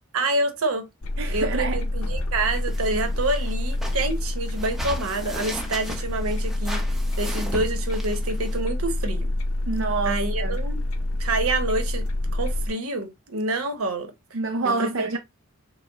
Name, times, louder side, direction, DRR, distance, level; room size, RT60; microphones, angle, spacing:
voice 1, 0.1-0.9 1.3-6.8 7.2-9.3 10.0-10.8 11.2-12.1 12.3-14.1 14.6-15.2, right 2 dB, 80° right, 1.0 m, -27 dB
sound 1, 1.0-12.7, left 1 dB, 75° left, 0.8 m, -27 dB
voice 2, 1.2-1.8 9.7-10.6 14.3-15.2, right 3 dB, 60° right, 0.6 m, -27 dB
sound 2, 2.4-8.6, equal, ahead, 0.7 m, -38 dB
5.6 x 2.2 x 4.0 m
head